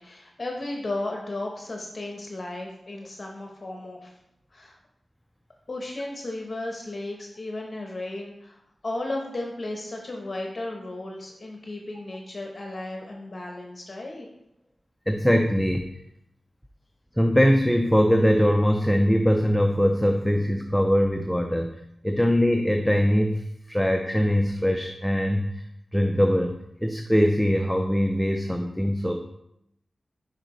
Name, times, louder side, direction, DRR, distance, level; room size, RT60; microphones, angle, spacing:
voice 1, 0.0-4.2 4.5-4.8 5.7-14.3, left 2 dB, 45° left, 1 dB, 0.8 m, -34 dB
voice 2, 15.1-15.8 17.2-21.7 22.0-25.6 25.9-29.2, equal, ahead, 4 dB, 0.4 m, -22 dB
6.5 x 4.9 x 3.0 m, 0.80 s
wide cardioid pair, 85°, 0 cm